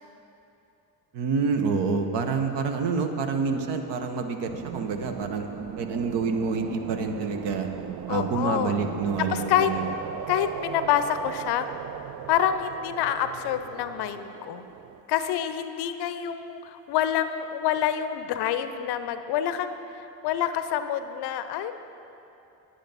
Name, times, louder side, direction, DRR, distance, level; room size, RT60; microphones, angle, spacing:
voice 1, 1.1-5.5 5.8-7.7 8.1-9.9, right 5 dB, 60° right, 6 dB, 1.0 m, -27 dB
sound 1, 4.5-15.0, right 10 dB, 40° right, 0.4 m, -38 dB
voice 2, 8.1-8.8 9.2-9.7 10.3-11.7 12.3-14.7 15.1-19.8 20.2-21.7, left 10 dB, 55° left, 10 dB, 0.6 m, -27 dB
10.0 x 9.2 x 4.1 m, 2.8 s
hypercardioid pair, 55°, 49 cm